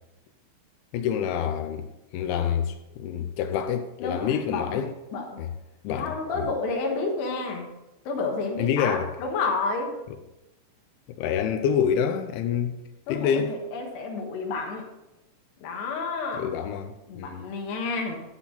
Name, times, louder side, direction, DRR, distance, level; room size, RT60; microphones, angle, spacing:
voice 1, 0.9-1.9 2.1-4.9 5.4-5.5 5.8-6.5 8.6-9.1 11.2-12.8 13.1-13.6 16.3-17.5, left 8 dB, 85° left, 2.7 m, -27 dB
voice 2, 4.0-4.8 5.1-5.5 5.9-7.7 8.1-9.9 13.1-14.8 15.6-16.5 17.1-18.2, left 3 dB, 65° left, 3.3 m, -30 dB
12.0 x 7.2 x 4.0 m
omnidirectional pair, 5.9 m